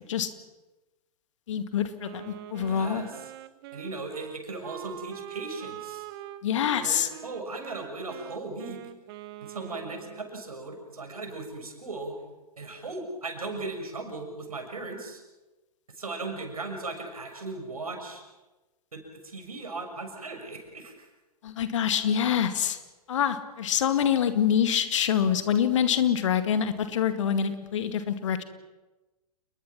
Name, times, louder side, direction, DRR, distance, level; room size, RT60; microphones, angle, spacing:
voice 1, 1.5-3.0 6.4-7.1 21.4-22.8 23.1-28.4, left 8 dB, 55° left, 9 dB, 2.1 m, -25 dB
Wind instrument woodwind instrument, 2.0-10.4, right 13 dB, 40° right, 1.2 m, -43 dB
voice 2, 2.7-3.1 3.7-6.1 6.7-8.8 9.4-12.2 12.6-15.2 15.9-18.2 18.9-21.1, right 3 dB, 70° right, 4 dB, 6.5 m, -37 dB
29.5 x 21.0 x 6.1 m, 1.1 s
figure-of-eight pair, 110°, 19 cm